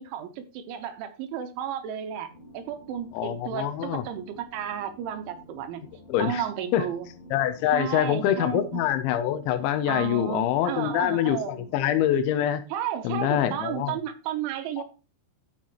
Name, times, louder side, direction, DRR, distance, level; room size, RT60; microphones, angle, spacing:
voice 1, 0.0-5.8 6.2-7.1 7.7-8.8 9.9-11.7 12.7-14.8, right 9 dB, 90° right, 3.4 m, -33 dB
sound 1, 2.3-12.2, left 1 dB, 35° left, 2.0 m, -50 dB
voice 2, 3.1-4.0 6.1-6.4 6.7-6.9 7.3-12.6 13.0-13.9, left 11 dB, 80° left, 3.1 m, -25 dB
12.5 x 5.7 x 3.0 m
omnidirectional pair, 5.4 m